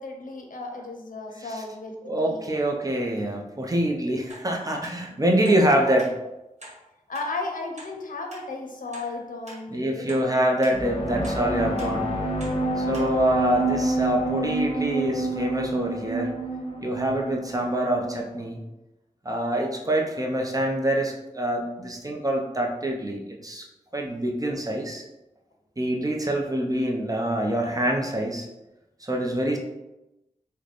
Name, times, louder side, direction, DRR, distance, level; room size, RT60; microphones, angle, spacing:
voice 1, 0.0-2.4 5.1-5.2 7.1-11.2 13.8-13.9 19.8-20.0 29.5-29.6, left 3 dB, 80° left, 2 dB, 0.6 m, -35 dB
voice 2, 2.1-6.1 9.7-12.1 12.8-16.3 16.8-18.6 19.2-23.6 23.9-25.0 25.8-28.5 29.0-29.6, right 1 dB, 25° right, 0 dB, 0.6 m, -25 dB
sound 1, 4.3-4.5 4.8-5.0 5.4-5.6 6.0-6.1 6.6-6.8 7.1-7.3 7.8-7.9 8.3-8.4 8.9-9.1 9.5-9.6 10.1-10.2 10.6-10.8 11.2-11.4 11.8-11.9 12.4-12.6 12.9-13.1 13.5-13.6, right 1 dB, 55° right, 1.2 m, -43 dB
sound 2, 10.7-18.3, right 2 dB, 45° left, 0.8 m, -28 dB
3.2 x 2.2 x 3.9 m, 0.97 s
wide cardioid pair, 60°, 14 cm